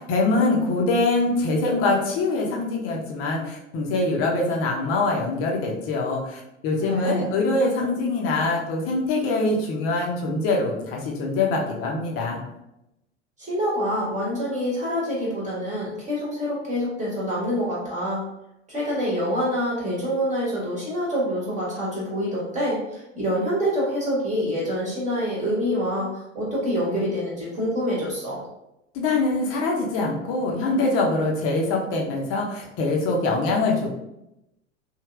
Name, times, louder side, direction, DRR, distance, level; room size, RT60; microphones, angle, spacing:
voice 1, 0.0-12.4 28.9-33.9, left 2 dB, 40° left, -1 dB, 0.8 m, -24 dB
voice 2, 6.8-7.3 13.4-18.3 18.7-28.4, equal, 20° right, -6 dB, 1.1 m, -26 dB
3.1 x 2.8 x 2.4 m, 0.87 s
figure-of-eight pair, 80°, 36 cm